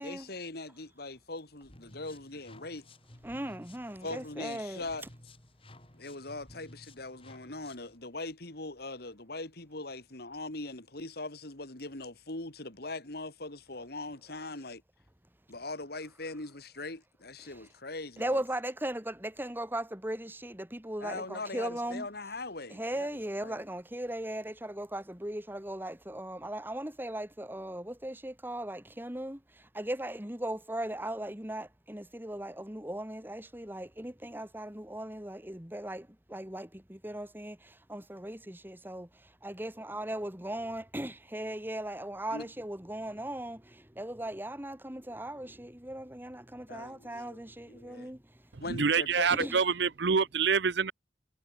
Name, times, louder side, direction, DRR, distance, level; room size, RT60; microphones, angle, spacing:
voice 1, 0.0-2.8 4.0-5.0 5.9-14.8 15.5-18.4 21.0-23.1 23.4-23.6 42.3-42.5 46.7-48.1 48.6-49.5, left 2 dB, 60° left, 3.0 m, -41 dB
sound 1, 1.6-8.0, left 1 dB, 30° left, 4.5 m, -55 dB
voice 2, 3.2-4.8 17.5-17.6 18.2-22.1 22.7-29.4 29.7-39.1 39.4-48.2 49.3-49.6, right 1 dB, 10° right, 2.5 m, -38 dB
voice 3, 48.7-50.9, right 5 dB, 70° right, 0.7 m, -26 dB
head